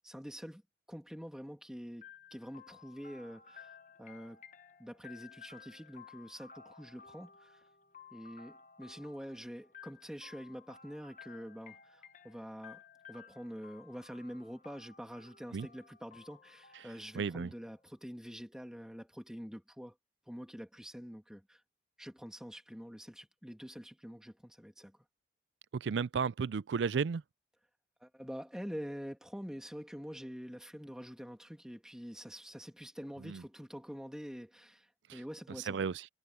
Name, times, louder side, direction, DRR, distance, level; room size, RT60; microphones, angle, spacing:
voice 1, 0.0-0.6 0.9-4.4 4.8-7.6 8.1-12.8 13.1-20.0 20.3-21.6 22.0-25.0 28.0-35.9, equal, 5° right, 2.3 m, -46 dB
sound 1, 2.0-17.8, left 6 dB, 45° left, 1.1 m, -56 dB
voice 2, 17.1-17.5 25.7-27.2 33.2-33.4 35.1-35.2 35.7-36.1, right 6 dB, 85° right, 0.4 m, -33 dB
head